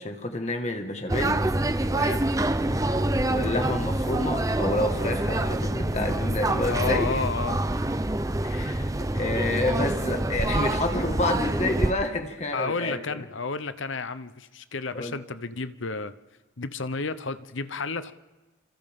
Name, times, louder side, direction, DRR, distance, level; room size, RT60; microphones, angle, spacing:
voice 1, 0.0-1.4 3.2-7.2 8.4-13.2 14.9-15.1, left 1 dB, 35° left, 1.9 m, -29 dB
sound 1, 1.1-11.9, right 1 dB, 15° right, 0.7 m, -26 dB
voice 2, 1.8-2.2 6.6-7.6 12.5-16.1 16.6-18.1, left 4 dB, 80° left, 0.9 m, -31 dB
28.5 x 26.5 x 3.8 m
head